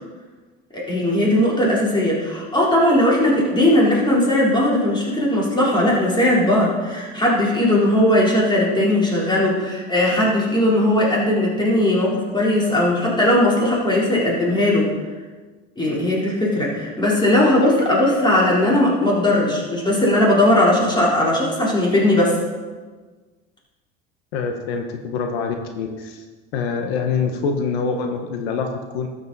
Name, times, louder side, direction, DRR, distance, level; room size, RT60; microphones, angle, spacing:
voice 1, 0.7-14.9 15.8-22.4, left 1 dB, 15° left, -5 dB, 3.9 m, -18 dB
voice 2, 24.3-26.2 26.5-29.1, left 5 dB, 90° left, 4 dB, 1.2 m, -25 dB
12.5 x 8.3 x 4.1 m, 1.4 s
supercardioid pair, 100°, 30 cm